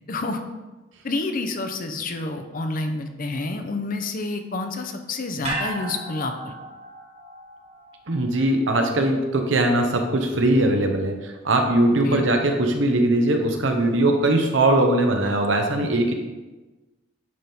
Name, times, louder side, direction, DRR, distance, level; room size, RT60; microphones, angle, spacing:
voice 1, 0.1-0.4 1.0-6.5 12.0-12.2, left 2 dB, 45° left, 6 dB, 0.7 m, -29 dB
sound 1, 5.4-9.8 10.1-10.2, right 2 dB, 35° right, 1.8 m, -36 dB
voice 2, 8.1-16.1, right 1 dB, 80° right, 4 dB, 0.9 m, -20 dB
9.5 x 3.6 x 4.3 m, 1.2 s
head